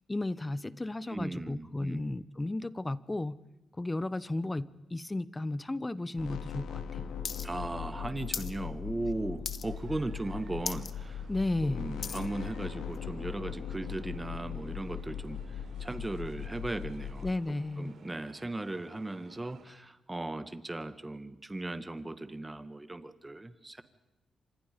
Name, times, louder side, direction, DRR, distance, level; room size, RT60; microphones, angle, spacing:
voice 1, 0.1-3.4 3.8-7.1 11.3-11.8 17.2-17.9, left 2 dB, 15° left, 17 dB, 0.9 m, -34 dB
voice 2, 1.1-2.0 7.4-11.2 11.6-23.8, right 2 dB, 15° right, 11 dB, 1.7 m, -37 dB
sound 1, 6.2-17.3, left 7 dB, 90° left, 2.0 m, -39 dB
sound 2, 7.2-7.5 7.7-8.5 8.9-9.1 9.4-9.9 10.3-10.4 10.6-10.9 11.4-12.3 12.9-13.0, left 6 dB, 50° left, 1.1 m, -38 dB
sound 3, 9.6-19.7, right 6 dB, 75° right, 4.3 m, -58 dB
30.0 x 26.0 x 5.3 m, 0.94 s
cardioid pair, 85°, 0 cm